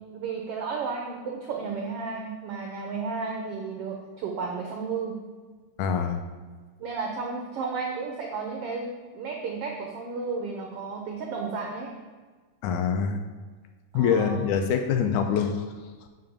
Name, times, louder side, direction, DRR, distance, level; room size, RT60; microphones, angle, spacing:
voice 1, 0.1-5.2 6.8-11.9 13.9-14.5, right 4 dB, 65° right, 1 dB, 1.5 m, -33 dB
voice 2, 5.8-6.2 12.6-13.2 13.9-15.7, left 7 dB, 80° left, 5 dB, 2.0 m, -24 dB
7.6 x 4.8 x 7.1 m, 1.4 s
omnidirectional pair, 3.7 m